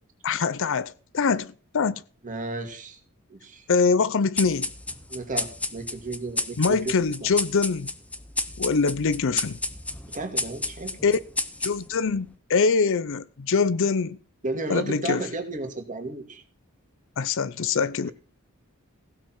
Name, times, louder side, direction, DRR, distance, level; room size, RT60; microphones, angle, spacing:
voice 1, 0.2-2.0 3.7-4.7 6.6-7.9 8.6-9.6 11.0-11.2 11.6-14.2 14.7-15.2 17.2-18.1, left 5 dB, 60° left, 0.6 m, -24 dB
voice 2, 2.2-3.0 3.3-3.7 5.1-6.9 7.2-7.3 10.1-11.0 14.4-16.4 18.0-18.1, right 2 dB, 35° right, 2.2 m, -33 dB
sound 1, 4.4-12.1, left 2 dB, 5° left, 0.7 m, -32 dB
16.0 x 6.8 x 6.0 m
head